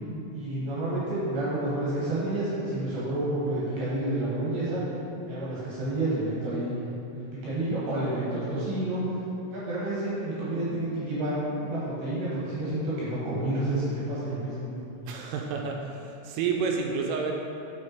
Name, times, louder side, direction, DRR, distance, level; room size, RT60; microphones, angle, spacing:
voice 1, 0.3-4.8 5.2-6.7 7.2-9.0 9.5-14.7, right 1 dB, 65° right, -8 dB, 2.7 m, -29 dB
voice 2, 15.1-17.3, right 5 dB, 85° right, 1 dB, 3.1 m, -30 dB
6.4 x 6.3 x 4.4 m, 2.8 s
omnidirectional pair, 5.8 m